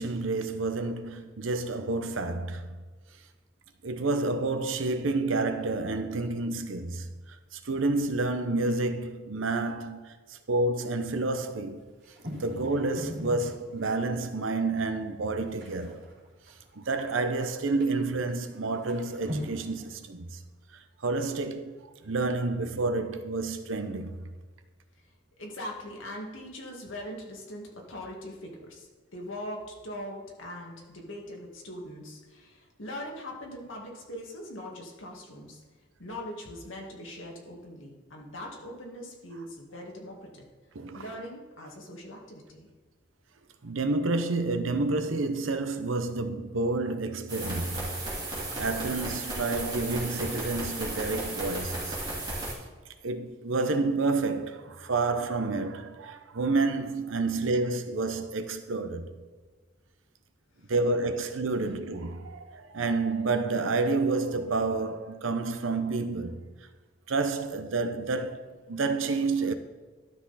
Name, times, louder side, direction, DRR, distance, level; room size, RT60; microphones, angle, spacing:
voice 1, 0.0-2.8 3.8-11.8 12.3-16.0 16.7-20.4 21.0-21.8 22.0-24.3 40.7-41.1 43.6-48.0 48.6-52.0 53.0-59.1 60.7-66.5 67.1-69.5, right 3 dB, 85° right, 0.8 m, -29 dB
sound 1, 11.7-14.3 14.8-14.9 15.1-17.3 17.8-17.9 18.3-18.4 18.7-19.9, equal, 60° right, 3.0 m, -40 dB
voice 2, 25.4-35.6 36.0-40.4 40.9-42.7, left 1 dB, 80° left, 1.9 m, -41 dB
sound 2, 47.3-52.5, right 2 dB, 25° right, 3.1 m, -34 dB
12.0 x 6.0 x 4.1 m
head